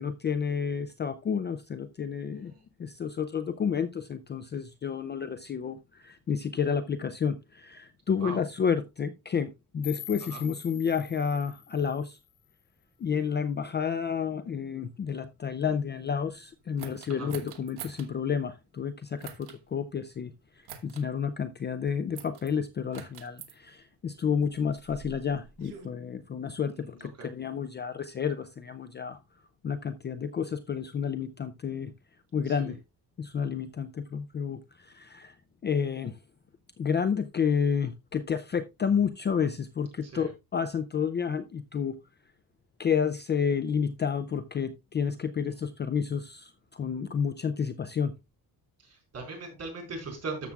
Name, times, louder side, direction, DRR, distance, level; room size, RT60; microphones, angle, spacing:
voice 1, 0.0-2.5 2.8-12.2 13.0-20.3 20.8-29.2 29.6-31.9 32.3-32.8 33.2-35.3 35.6-36.2 36.8-42.0 42.8-48.1, left 7 dB, 30° left, 10 dB, 0.4 m, -30 dB
voice 2, 2.3-2.6 8.2-8.4 10.3-10.4 17.2-17.3 26.7-27.3 32.5-32.7 40.0-40.3 48.8-50.5, right 3 dB, 40° right, 1 dB, 4.4 m, -40 dB
sound 1, 9.8-12.8, left 12 dB, 80° left, 1.4 m, -46 dB
sound 2, 16.8-18.1 19.2-19.6 20.7-21.1 22.2-22.5 22.9-23.5 24.4-25.9, right 8 dB, 85° right, 1.4 m, -45 dB
13.0 x 7.1 x 2.3 m, 0.24 s
cardioid pair, 160°, 38 cm